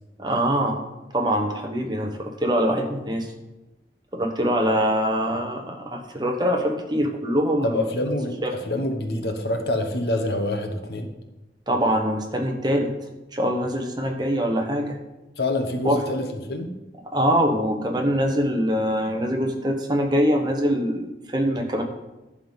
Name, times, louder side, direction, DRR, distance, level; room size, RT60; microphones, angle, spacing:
voice 1, 0.2-0.8 1.1-3.3 4.1-7.8 8.4-8.5 11.7-12.9 13.3-15.0 15.8-16.0 17.1-21.8, equal, 25° right, 3 dB, 1.0 m, -23 dB
voice 2, 7.6-11.1 15.4-16.7, left 1 dB, 65° left, 5 dB, 1.0 m, -26 dB
11.0 x 3.7 x 7.3 m, 1.0 s
head